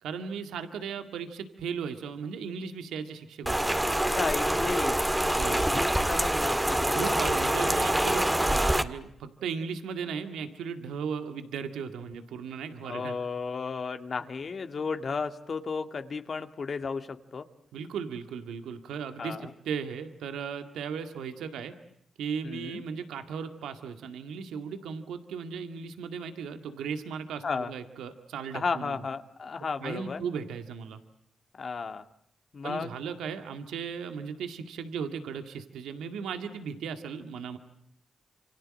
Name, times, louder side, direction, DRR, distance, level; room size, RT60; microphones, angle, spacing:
voice 1, 0.0-3.8 5.3-5.7 6.9-13.2 17.7-21.8 22.2-29.0 29.8-31.0 32.6-37.6, right 6 dB, 90° right, 8 dB, 2.0 m, -36 dB
Rain, 3.5-8.8, right 1 dB, 10° right, 1.9 m, -25 dB
voice 2, 4.1-7.2 12.8-17.5 19.2-19.5 22.4-22.8 27.4-27.7 28.5-30.2 31.6-32.0 32.5-32.9, left 5 dB, 60° left, 8 dB, 2.1 m, -34 dB
28.0 x 25.5 x 7.7 m, 0.73 s
supercardioid pair, 50°, 0 cm